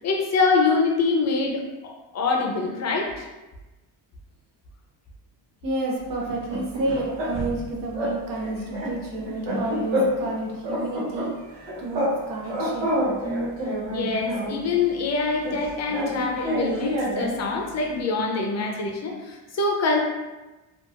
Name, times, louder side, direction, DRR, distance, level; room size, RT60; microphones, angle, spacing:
voice 1, 0.0-3.3 13.9-20.0, left 4 dB, 40° left, 1 dB, 0.5 m, -25 dB
voice 2, 5.6-11.3 11.8-12.9, right 2 dB, 50° right, -3 dB, 0.7 m, -30 dB
sound 1, 6.3-7.6 7.9-8.2 8.4-10.3 10.6-12.2 12.4-14.6 15.4-17.4, equal, 85° right, 1.0 m, -27 dB
2.8 x 2.4 x 2.4 m, 1.1 s
cardioid pair, 110°, 43 cm